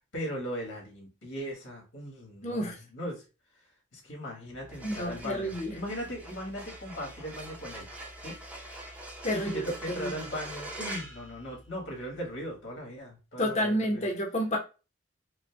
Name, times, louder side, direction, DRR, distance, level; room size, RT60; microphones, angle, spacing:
voice 1, 0.1-3.2 3.9-7.9 8.2-8.4 9.3-14.0, equal, 85° left, -1 dB, 1.5 m, -38 dB
voice 2, 2.4-2.8 4.8-5.8 9.2-9.6 10.0-10.1 13.4-14.6, equal, 40° left, 1 dB, 0.7 m, -29 dB
sound 1, 4.6-12.0, right 1 dB, 5° right, 0.6 m, -43 dB
5.0 x 2.1 x 2.2 m, 0.31 s
head